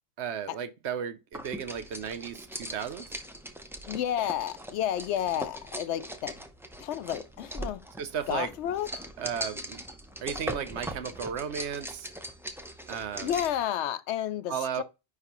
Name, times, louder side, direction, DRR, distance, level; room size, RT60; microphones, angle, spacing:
voice 1, 0.2-3.1 8.0-8.5 9.2-9.8 10.2-12.1 12.9-13.4 14.5-14.8, right 7 dB, 80° right, 1.0 m, -34 dB
sound 1, 1.3-13.6, equal, 5° right, 0.5 m, -40 dB
voice 2, 3.9-6.4 6.8-7.8 8.3-8.9 13.2-14.8, left 11 dB, 90° left, 0.9 m, -31 dB
9.7 x 3.3 x 2.9 m
omnidirectional pair, 1.1 m